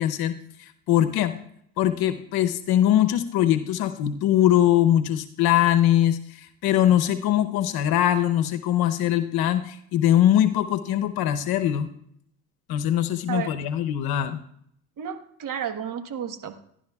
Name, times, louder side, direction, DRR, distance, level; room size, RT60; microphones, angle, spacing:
voice 1, 0.0-1.3 1.8-11.9 12.7-14.4, left 11 dB, 65° left, 9 dB, 0.8 m, -22 dB
voice 2, 15.0-16.6, right 8 dB, 50° right, 9 dB, 1.3 m, -32 dB
17.5 x 11.5 x 2.3 m, 0.69 s
supercardioid pair, 90°, 40 cm